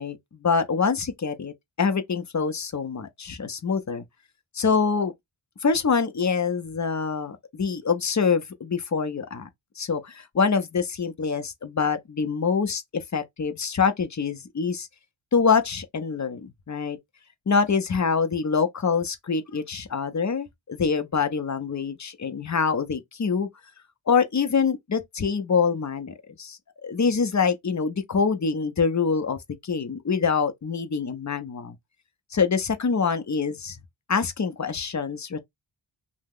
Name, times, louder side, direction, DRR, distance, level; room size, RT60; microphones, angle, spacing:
voice 1, 0.0-1.5 1.8-4.0 4.5-5.1 5.6-9.5 9.8-14.9 15.3-17.0 17.5-23.5 24.1-31.8 32.3-33.8 34.1-35.4, left 5 dB, 35° left, 0.6 m, -25 dB
2.8 x 2.0 x 3.6 m
wide cardioid pair, 65°, 50 cm